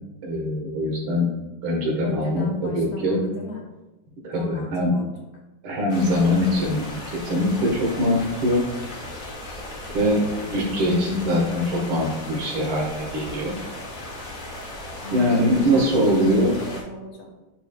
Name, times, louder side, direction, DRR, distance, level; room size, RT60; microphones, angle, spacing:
voice 1, 0.2-1.3 1.6-3.2 4.2-4.9 5.6-8.6 9.9-13.6 15.1-16.5, equal, 85° right, -3 dB, 2.5 m, -22 dB
voice 2, 2.0-3.7 4.3-5.1 15.0-17.4, equal, 80° left, -1 dB, 2.1 m, -37 dB
sound 1, 5.9-16.8, left 1 dB, 35° left, 0.8 m, -36 dB
10.0 x 4.6 x 2.4 m, 1.1 s
omnidirectional pair, 2.3 m